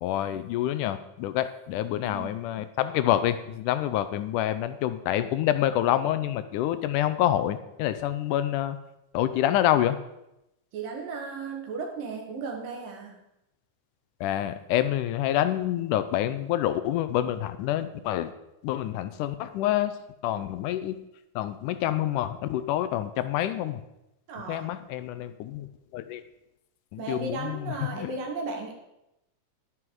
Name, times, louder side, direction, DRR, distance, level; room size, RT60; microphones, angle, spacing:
voice 1, 0.0-8.8 9.1-10.0 14.2-18.3 18.6-19.9 20.2-21.0 21.4-23.8 24.5-26.2 27.1-28.1, left 12 dB, 80° left, 11 dB, 2.0 m, -27 dB
voice 2, 10.7-13.2 24.3-24.7 27.0-28.7, right 4 dB, 80° right, 1 dB, 3.5 m, -35 dB
10.5 x 9.7 x 4.7 m, 0.88 s
omnidirectional pair, 3.8 m